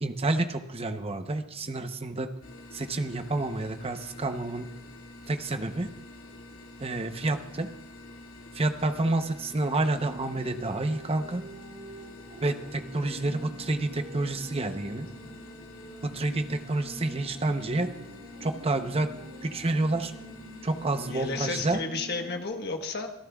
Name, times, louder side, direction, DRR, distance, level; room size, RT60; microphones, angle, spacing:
voice 1, 0.0-2.3 2.7-4.7 5.3-5.9 6.8-7.7 8.5-11.4 12.4-15.1 16.0-17.9 18.4-19.1 19.4-20.1 20.6-21.8, right 2 dB, 25° right, 7 dB, 0.8 m, -29 dB
sound 1, 2.4-21.7, left 1 dB, 70° left, 2.4 m, -47 dB
sound 2, 10.0-22.4, right 1 dB, 50° right, 3.2 m, -46 dB
voice 2, 21.1-23.1, left 3 dB, 50° left, 4 dB, 1.3 m, -32 dB
25.5 x 13.5 x 2.4 m, 0.83 s
head